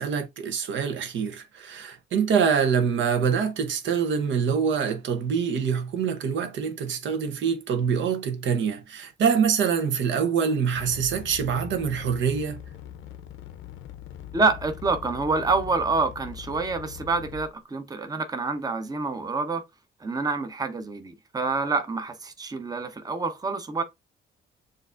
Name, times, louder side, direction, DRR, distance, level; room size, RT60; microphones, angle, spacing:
voice 1, 0.0-12.6, right 6 dB, 70° right, 0.8 m, -25 dB
sound 1, 10.7-17.6, left 9 dB, 80° left, 0.6 m, -41 dB
voice 2, 14.3-19.6 20.0-23.8, right 3 dB, 20° right, 0.7 m, -27 dB
6.6 x 2.5 x 2.5 m
cardioid pair, 90°, 20 cm